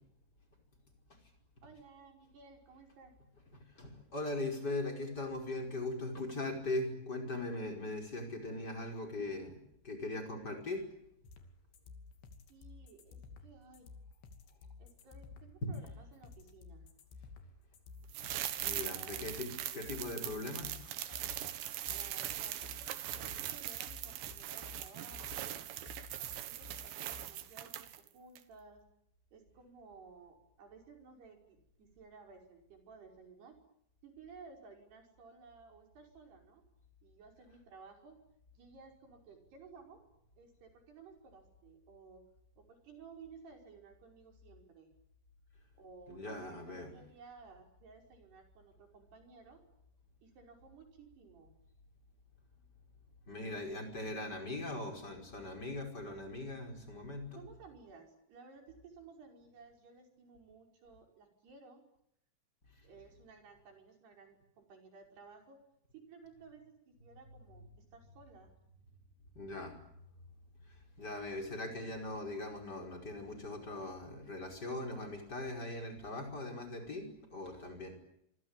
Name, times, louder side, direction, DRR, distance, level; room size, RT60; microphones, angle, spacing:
voice 1, 1.6-3.1 12.5-13.9 14.8-16.9 18.9-19.3 21.9-25.7 26.2-28.8 29.3-33.6 34.0-36.6 37.0-38.2 38.6-40.0 40.4-42.3 42.6-44.9 45.8-49.6 50.2-51.6 57.4-61.8 62.8-65.6 65.9-68.5, right 5 dB, 65° right, 4 dB, 7.2 m, -56 dB
voice 2, 3.5-9.6 9.8-10.8 15.6-15.7 18.6-20.8 46.1-46.9 53.3-57.4 69.4-69.8 70.7-77.9, left 2 dB, 20° left, 4 dB, 5.5 m, -40 dB
sound 1, 11.2-27.2, left 4 dB, 70° left, 4.7 m, -53 dB
sound 2, 18.1-28.1 28.4-28.5, right 12 dB, 80° right, 3.8 m, -41 dB
27.0 x 24.5 x 9.0 m, 0.74 s
omnidirectional pair, 5.1 m